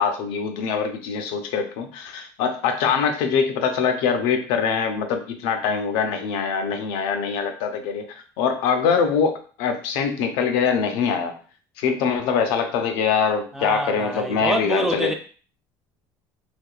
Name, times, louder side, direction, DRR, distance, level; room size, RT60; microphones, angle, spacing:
voice 1, 0.0-8.0 8.4-11.4 11.8-15.1, left 6 dB, 70° left, 0.6 m, -23 dB
voice 2, 13.5-15.1, right 1 dB, 5° right, 0.3 m, -26 dB
3.4 x 3.1 x 2.4 m
cardioid pair, 160°, 8 cm